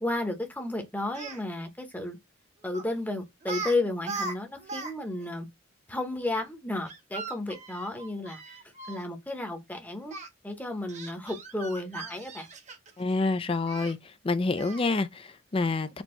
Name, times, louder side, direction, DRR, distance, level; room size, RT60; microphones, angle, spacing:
voice 1, 0.0-2.2 2.6-5.5 5.9-8.6 8.9-10.2 10.4-12.5, left 2 dB, 10° left, 0.8 m, -33 dB
Speech, 1.1-1.4 2.7-2.9 3.4-3.7 4.0-4.9 5.2-5.3 6.9-9.0 10.1-10.3 10.9-13.0 13.7-13.9 14.6-14.9, right 3 dB, 35° right, 0.8 m, -39 dB
voice 2, 13.0-14.0 14.2-16.0, left 3 dB, 25° left, 0.4 m, -27 dB
4.4 x 2.8 x 4.3 m
head